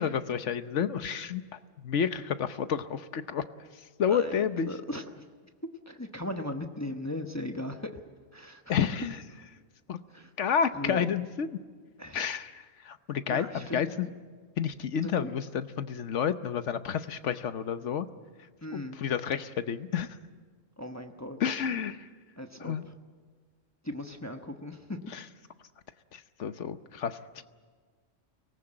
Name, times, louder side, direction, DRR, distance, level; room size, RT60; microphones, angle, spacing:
voice 1, 0.0-1.4 1.8-3.4 4.0-4.7 8.7-9.2 9.9-10.0 10.4-11.6 12.1-12.5 12.8-14.1 14.6-18.1 18.7-20.1 21.4-22.0 22.6-22.8 25.1-25.2 26.1-27.4, left 7 dB, 70° left, 11 dB, 1.2 m, -30 dB
voice 2, 4.1-5.2 5.9-8.0 8.3-8.6 10.1-10.3 10.7-11.0 12.0-12.3 13.3-14.1 15.0-15.3 18.6-19.0 20.8-21.4 22.4-22.7 23.8-25.0, left 1 dB, 15° left, 5 dB, 1.0 m, -38 dB
24.0 x 18.5 x 8.8 m, 1.5 s
omnidirectional pair, 1.3 m